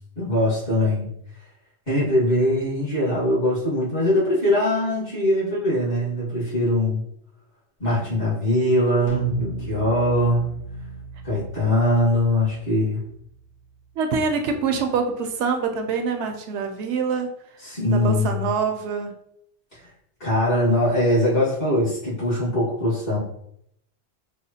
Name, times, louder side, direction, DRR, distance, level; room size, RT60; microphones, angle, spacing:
voice 1, 0.2-1.1 1.9-7.0 7.8-10.5 11.2-13.0 17.6-18.5 20.2-23.2, left 1 dB, 55° left, -8 dB, 1.9 m, -22 dB
sound 1, 9.1-13.7, right 4 dB, 90° left, 1.1 m, -35 dB
voice 2, 14.0-17.3 17.9-19.1, right 5 dB, 80° right, 5 dB, 0.9 m, -25 dB
4.9 x 2.3 x 2.7 m, 0.73 s
omnidirectional pair, 1.2 m